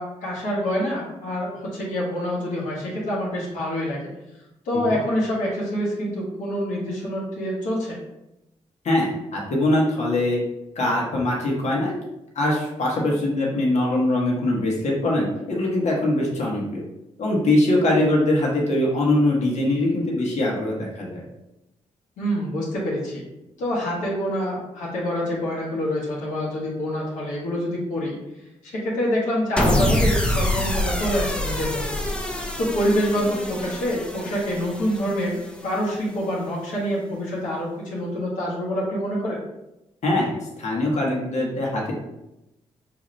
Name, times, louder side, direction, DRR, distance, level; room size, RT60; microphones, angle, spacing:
voice 1, 0.0-4.0 4.6-8.0 22.2-23.3 23.6-28.1 28.7-31.8 32.6-35.4 35.6-39.4, equal, 85° left, -5 dB, 1.1 m, -26 dB
voice 2, 8.8-10.4 10.7-11.9 12.3-16.8 17.2-21.2 40.0-41.9, left 1 dB, 60° left, -3 dB, 1.1 m, -22 dB
sound 1, 29.6-35.9, left 1 dB, 5° left, 0.7 m, -26 dB
4.8 x 2.5 x 3.1 m, 0.91 s
supercardioid pair, 50°, 13 cm